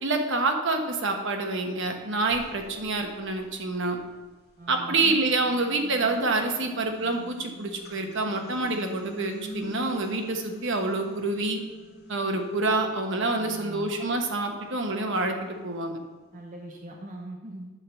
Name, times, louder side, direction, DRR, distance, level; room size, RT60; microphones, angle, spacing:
voice 1, 0.0-4.0 4.7-11.6 12.1-16.0, right 2 dB, 55° right, 4 dB, 1.2 m, -27 dB
sound 1, 1.5-1.6 2.2-4.5 5.0-16.3, right 2 dB, 45° left, 2.2 m, -46 dB
voice 2, 4.6-5.2 13.4-13.9 16.3-17.7, right 1 dB, 35° right, -1 dB, 0.9 m, -41 dB
11.0 x 3.9 x 7.0 m, 1.3 s
head